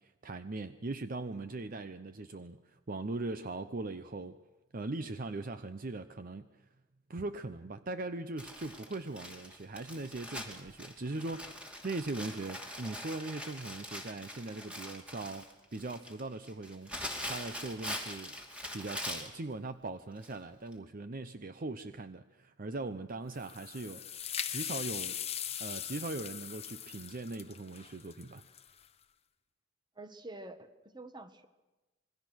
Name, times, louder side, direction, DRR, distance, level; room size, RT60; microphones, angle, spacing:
voice 1, 0.0-4.4 4.7-6.5 7.1-18.3 18.7-24.0 24.5-25.2 25.6-28.5, right 2 dB, 45° right, 11 dB, 0.7 m, -40 dB
Crumpling crinkling, 8.4-19.4 20.2-20.4 20.7-20.8, equal, 5° right, 2.8 m, -43 dB
sound 1, 23.3-28.9, left 9 dB, 30° left, 0.9 m, -40 dB
voice 2, 29.9-31.5, right 2 dB, 20° right, 10 dB, 1.4 m, -47 dB
27.0 x 21.5 x 6.3 m, 1.1 s
head